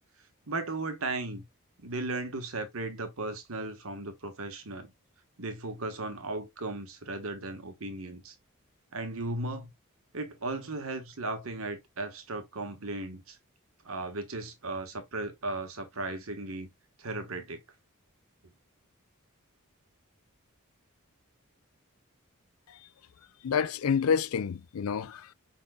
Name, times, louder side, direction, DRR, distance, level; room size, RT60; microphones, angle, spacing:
voice 1, 0.5-1.4 1.8-4.9 5.4-8.3 8.9-9.7 10.1-13.4 13.8-16.7 17.0-17.6, right 2 dB, 80° right, 1.2 m, -36 dB
voice 2, 23.4-25.3, left 7 dB, 85° left, 0.4 m, -28 dB
5.2 x 4.2 x 2.2 m
head